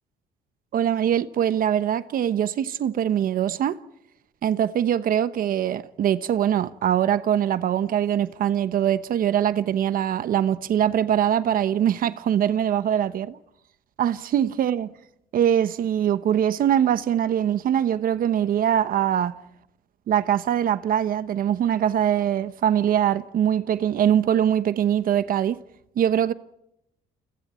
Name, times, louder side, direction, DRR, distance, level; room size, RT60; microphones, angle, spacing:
voice 1, 0.7-3.8 4.4-13.4 14.0-14.9 15.3-19.3 20.1-25.6 26.0-26.3, right 10 dB, 55° right, 1.1 m, -22 dB
29.5 x 23.5 x 4.4 m
cardioid pair, 110°, 17 cm